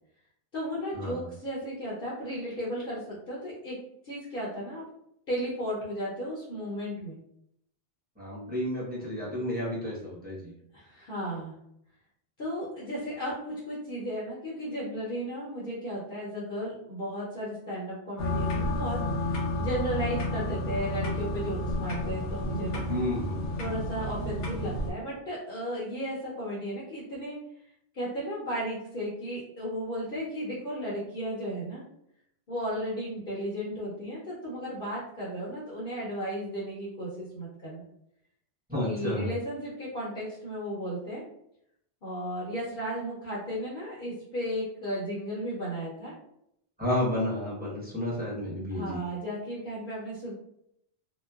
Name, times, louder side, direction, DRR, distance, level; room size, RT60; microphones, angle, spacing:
voice 1, 0.5-3.8 4.0-4.8 5.3-7.1 10.7-11.5 12.4-22.8 23.6-27.4 27.9-31.8 32.5-37.8 38.8-41.2 42.0-46.1 48.7-50.3, equal, 55° left, -6 dB, 0.9 m, -34 dB
voice 2, 8.2-10.5 22.9-23.5 38.7-39.3 46.8-49.0, left 1 dB, 10° right, -8 dB, 0.9 m, -31 dB
sound 1, 18.2-24.9, left 1 dB, 80° left, 1.0 m, -31 dB
2.9 x 2.0 x 2.3 m, 0.76 s
omnidirectional pair, 1.2 m